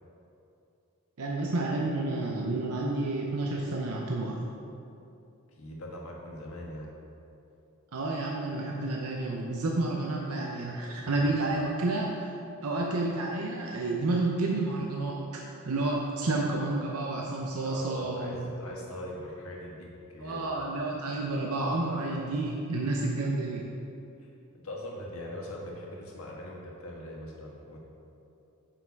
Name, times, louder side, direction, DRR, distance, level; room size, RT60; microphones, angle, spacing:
voice 1, 1.2-4.4 7.9-12.3 12.6-18.4 20.2-23.6, right 2 dB, 85° right, -2 dB, 0.7 m, -30 dB
voice 2, 5.5-6.9 10.8-11.3 17.6-20.4 24.2-24.3 24.6-27.8, left 1 dB, 75° left, -2 dB, 1.5 m, -41 dB
7.2 x 5.9 x 4.6 m, 2.8 s
head